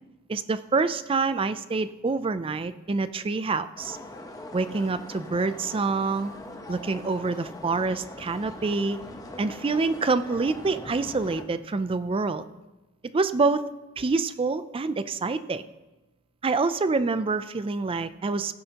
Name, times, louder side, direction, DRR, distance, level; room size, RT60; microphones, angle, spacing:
voice 1, 0.3-4.0 4.5-6.3 6.7-9.0 9.4-12.4 13.1-13.6 14.0-15.6 16.4-18.5, right 3 dB, 25° right, 13 dB, 0.4 m, -26 dB
sound 1, 3.8-11.4, left 1 dB, 15° left, 0.9 m, -42 dB
15.5 x 9.9 x 2.9 m, 1.1 s
head